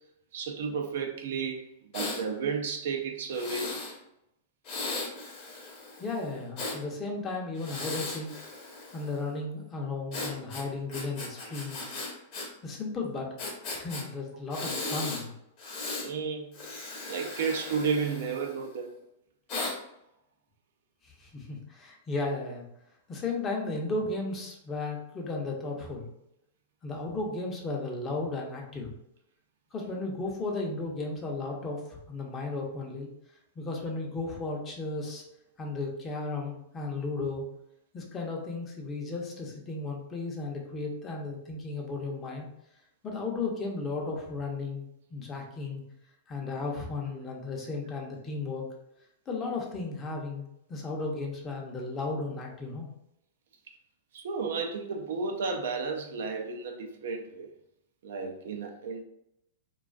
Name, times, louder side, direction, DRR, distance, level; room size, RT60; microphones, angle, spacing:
voice 1, 0.3-3.8 16.0-18.9 54.1-57.5 58.0-59.0, right 5 dB, 70° right, 0.4 m, -33 dB
Breathing, 1.9-2.2 3.3-3.9 4.6-6.8 7.5-9.2 10.1-12.5 12.7-12.8 13.4-14.0 14.5-15.2 15.6-16.1 16.5-18.7 19.5-19.7, left 3 dB, 45° left, 1.0 m, -37 dB
voice 2, 6.0-8.3 8.9-11.9 12.6-15.3 21.2-22.7 23.1-26.1 26.8-28.9 29.7-33.1 33.6-35.2 35.6-37.4 37.9-42.5 43.0-44.8 45.1-45.8 46.3-48.7 49.3-52.9, left 3 dB, 25° left, 0.6 m, -35 dB
2.4 x 2.3 x 2.3 m
hypercardioid pair, 125°, 0 cm